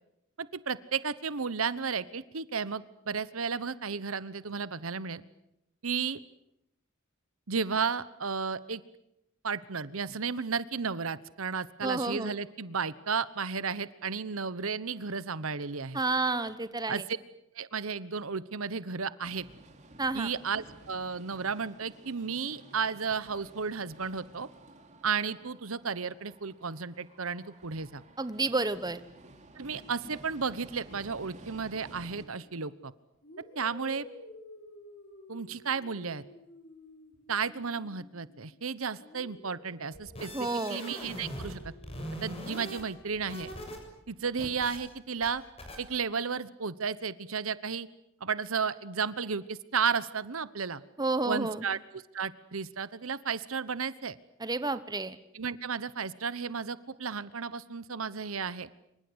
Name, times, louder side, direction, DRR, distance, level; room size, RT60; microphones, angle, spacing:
voice 1, 0.4-5.2 5.8-6.2 7.5-8.8 9.4-16.0 16.9-17.0 17.6-19.5 20.1-24.5 25.0-28.0 29.6-32.9 33.6-34.1 35.3-36.2 37.3-41.6 42.2-43.5 44.1-45.4 45.8-47.9 48.2-50.8 51.3-54.2 55.3-58.7, right 5 dB, 80° right, 16 dB, 1.1 m, -33 dB
voice 2, 11.8-12.3 15.9-17.0 20.0-20.3 28.2-29.0 40.3-40.8 51.0-51.7 54.4-55.2, right 3 dB, 20° right, 13 dB, 1.2 m, -30 dB
sound 1, 19.2-32.3, right 2 dB, 35° right, 3.2 m, -53 dB
sound 2, 32.2-32.4 33.2-38.6 39.0-42.9, left 1 dB, 50° left, 5.3 m, -53 dB
sound 3, 39.9-41.6 41.8-43.8 44.1-44.8 45.2-45.3 45.6-45.8, equal, 30° left, 7.2 m, -41 dB
27.0 x 25.0 x 8.1 m, 0.83 s
head